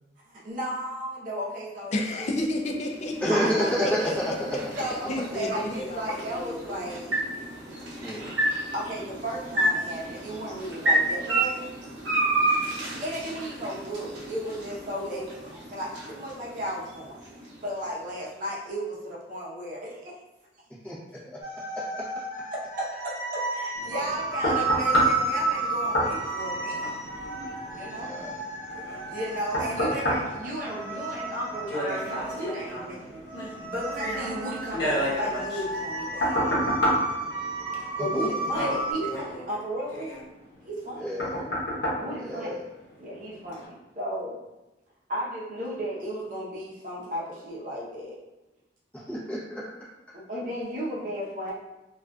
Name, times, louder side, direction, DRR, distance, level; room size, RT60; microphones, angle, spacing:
voice 1, 0.2-1.9 3.3-4.2 4.8-7.2 8.3-11.7 12.8-20.1 22.8-26.9 27.7-28.1 28.8-36.5 38.0-40.1 40.6-41.1 42.0-42.6 43.0-44.4 45.1-48.2 50.1-51.5, equal, 50° right, -5 dB, 0.7 m, -34 dB
voice 2, 1.9-4.4 4.8-7.0, left 1 dB, 40° left, 2 dB, 0.3 m, -32 dB
sound 1, 2.0-18.2, right 1 dB, 85° right, 0.7 m, -31 dB
voice 3, 3.2-4.0 5.1-5.2 8.0-8.3 20.8-21.0 21.3-21.4 21.9-22.0 28.0-28.4 38.1-38.5 41.0-41.5 42.2-42.6 48.9-49.6, equal, 10° left, -8 dB, 0.7 m, -29 dB
sound 2, 21.4-38.9, right 3 dB, 20° right, 1.1 m, -32 dB
sound 3, 23.8-43.0 43.5-43.7, equal, 70° left, 0.8 m, -31 dB
2.5 x 2.3 x 2.2 m, 1.0 s
head